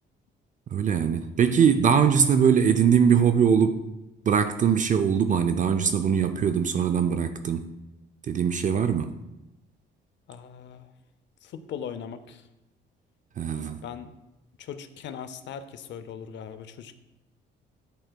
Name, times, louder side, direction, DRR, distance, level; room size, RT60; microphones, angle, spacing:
voice 1, 0.7-3.9 4.2-7.7 8.3-9.2 13.4-13.8, right 7 dB, 40° right, 9 dB, 0.4 m, -22 dB
voice 2, 10.3-10.9 11.4-12.5 13.8-14.1 14.6-17.0, left 8 dB, 65° left, 11 dB, 0.5 m, -39 dB
10.5 x 4.3 x 2.2 m, 0.95 s
cardioid pair, 90°, 20 cm